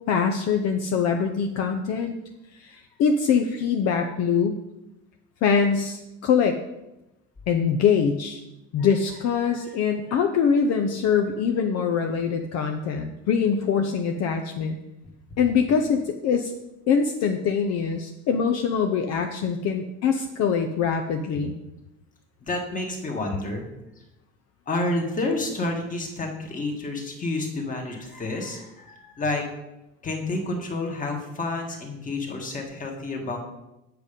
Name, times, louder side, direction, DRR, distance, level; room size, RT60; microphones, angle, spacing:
voice 1, 0.1-2.1 2.6-4.6 5.4-6.6 7.5-8.4 8.7-14.8 15.4-16.5 16.9-21.5, left 6 dB, 55° left, 5 dB, 0.8 m, -23 dB
voice 2, 22.4-23.7 24.7-29.5 30.0-33.4, left 2 dB, 25° left, 2 dB, 1.9 m, -29 dB
8.3 x 8.0 x 5.3 m, 0.95 s
cardioid pair, 145°, 31 cm